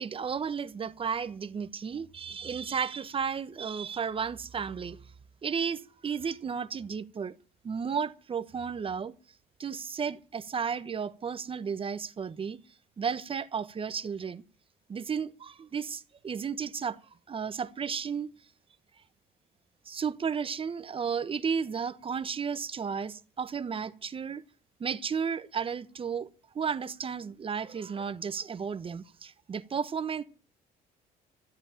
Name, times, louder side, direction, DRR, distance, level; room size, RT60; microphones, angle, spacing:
voice 1, 0.0-5.0 5.4-7.4 7.6-9.1 9.6-12.6 13.0-14.4 14.9-17.0 17.3-18.3 19.9-24.4 24.8-26.3 26.5-30.2, right 6 dB, 30° right, 1.2 m, -33 dB
13.5 x 8.1 x 9.0 m
cardioid pair, 110°, 17 cm